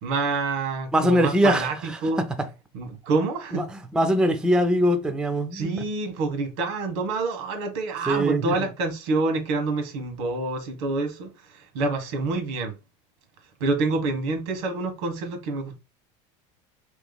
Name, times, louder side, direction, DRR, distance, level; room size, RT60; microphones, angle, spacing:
voice 1, 0.0-1.8 2.0-2.3 2.7-3.6 5.5-12.8 13.6-15.8, right 3 dB, 85° right, 1.3 m, -27 dB
voice 2, 0.9-2.0 3.5-5.7 8.1-8.5, equal, 5° right, 0.4 m, -22 dB
3.2 x 3.0 x 3.9 m
cardioid pair, 150°, 15 cm